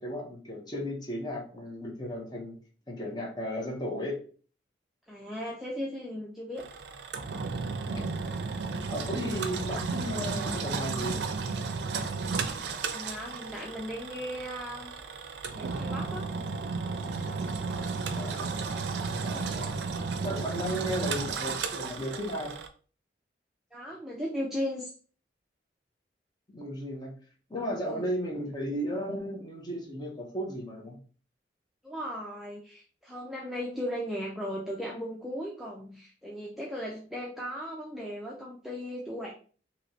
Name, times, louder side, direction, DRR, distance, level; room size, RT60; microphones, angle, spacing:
voice 1, 0.0-2.5 2.9-4.2 7.9-8.1 8.9-11.2 18.2-18.5 19.2-19.8 20.2-22.5 26.5-27.1 27.5-31.0, equal, 25° left, -1 dB, 0.8 m, -35 dB
voice 2, 5.1-6.6 12.8-14.9 15.5-16.3 19.3-19.6 23.7-24.9 27.8-28.1 31.8-39.3, equal, ahead, -4 dB, 0.4 m, -37 dB
Engine, 6.6-22.7, right 4 dB, 75° right, 0.4 m, -33 dB
3.1 x 2.8 x 2.7 m, 0.41 s
head